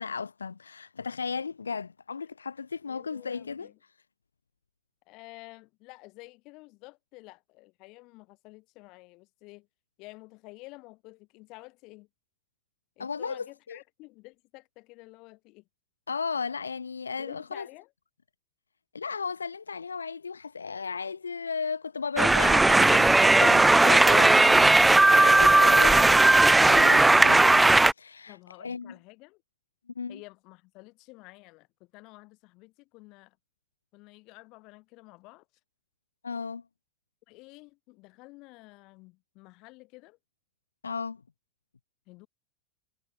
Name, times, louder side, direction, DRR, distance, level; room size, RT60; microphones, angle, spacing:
voice 1, 0.0-3.7 13.0-13.8 16.1-17.7 18.9-27.7 28.0-28.9 30.0-30.2 36.2-36.6 40.8-41.2, left 5 dB, 80° left, 0.9 m, -35 dB
voice 2, 2.9-3.8 5.1-9.7 10.0-12.1 13.0-15.7 17.2-17.9 28.3-29.4 30.1-33.4 33.9-35.4 37.3-40.2 42.1-42.3, left 24 dB, 50° left, 5.1 m, -50 dB
sound 1, 22.2-27.9, right 2 dB, 10° right, 0.5 m, -17 dB
figure-of-eight pair, 85°, 0 cm